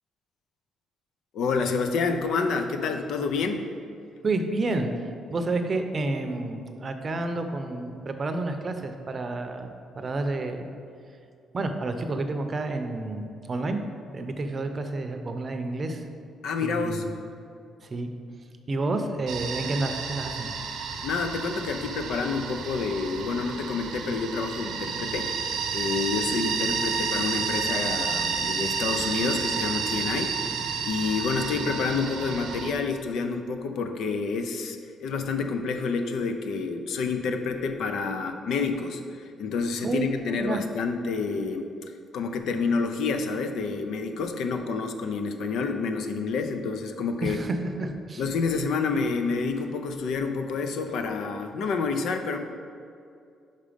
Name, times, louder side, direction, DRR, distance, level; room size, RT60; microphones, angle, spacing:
voice 1, 1.3-3.7 16.4-17.1 21.0-41.7 42.1-47.4 47.8-47.9 48.2-52.4, left 4 dB, 75° left, 6 dB, 0.5 m, -28 dB
voice 2, 4.2-4.9 5.3-10.7 11.5-13.8 14.1-16.0 16.6-17.0 17.8-18.1 18.7-20.5 39.8-40.0 40.4-40.6 47.2-48.2, right 2 dB, 40° right, 6 dB, 0.6 m, -30 dB
sound 1, 19.3-32.7, right 5 dB, 80° right, 0.6 m, -30 dB
5.4 x 5.0 x 5.1 m, 2.4 s
cardioid pair, 90°, 0 cm